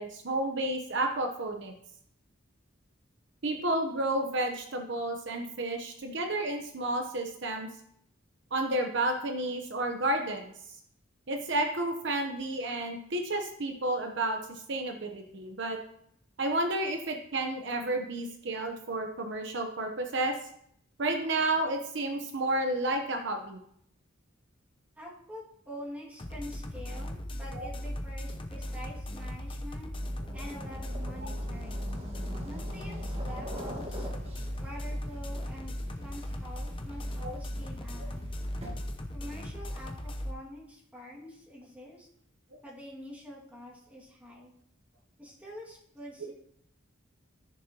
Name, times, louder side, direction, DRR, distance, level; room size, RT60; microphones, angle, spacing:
voice 1, 0.0-1.7 3.4-7.7 8.5-10.5 11.3-15.8 16.4-20.3 21.0-23.6 27.5-27.7 37.2-37.4 38.0-38.1 38.6-38.7, right 2 dB, 65° right, 4 dB, 0.9 m, -31 dB
voice 2, 25.0-29.9 30.3-31.9 32.4-34.1 34.6-38.4 39.1-42.1 42.6-44.5 45.2-46.3, equal, 10° right, -5 dB, 2.2 m, -46 dB
sound 1, 26.2-40.3, equal, 25° left, 0.8 m, -37 dB
sound 2, 30.0-39.1, equal, 30° right, 1.6 m, -45 dB
14.0 x 6.7 x 2.9 m, 0.70 s
head